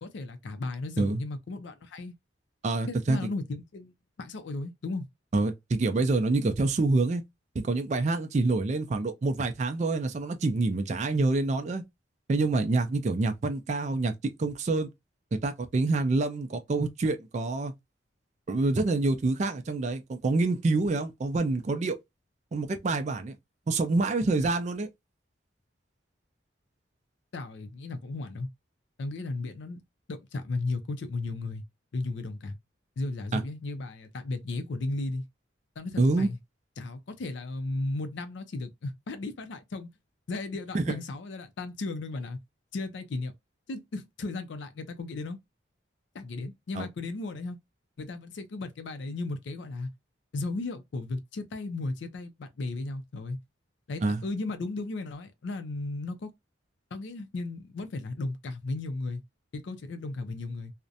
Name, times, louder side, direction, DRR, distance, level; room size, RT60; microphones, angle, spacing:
voice 1, 0.0-2.1 2.9-5.1 27.3-28.5 29.0-29.8 30.1-31.6 31.9-32.6 33.0-35.2 35.8-36.4 36.8-39.9 40.3-42.4 42.7-43.3 43.7-45.4 46.1-47.6 48.0-49.9 50.3-53.4 53.9-56.3 56.9-59.2 59.5-60.7, left 2 dB, 70° left, 0.4 m, -35 dB
voice 2, 2.6-3.2 5.3-7.2 7.6-11.8 12.3-14.1 14.4-14.9 15.4-17.7 18.5-22.0 22.5-23.4 23.7-24.9 33.3-33.4 36.0-36.3 40.7-41.0 46.7-46.9 54.0-54.2, right 3 dB, 35° right, 0.3 m, -26 dB
2.4 x 2.1 x 2.6 m
head